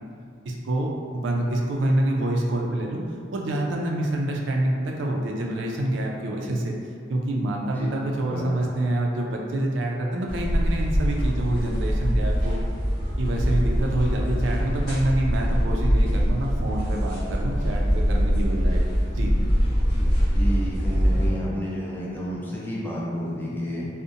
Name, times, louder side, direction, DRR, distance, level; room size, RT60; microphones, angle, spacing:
voice 1, 0.5-3.0 3.3-6.7 7.1-12.6 13.2-18.8 19.1-19.4, right 1 dB, 75° right, -1 dB, 0.4 m, -26 dB
voice 2, 8.2-8.7 20.3-23.9, equal, 10° left, -6 dB, 0.4 m, -31 dB
sound 1, 10.3-21.3, equal, 50° left, 0.7 m, -23 dB
2.6 x 2.1 x 2.5 m, 2.2 s
head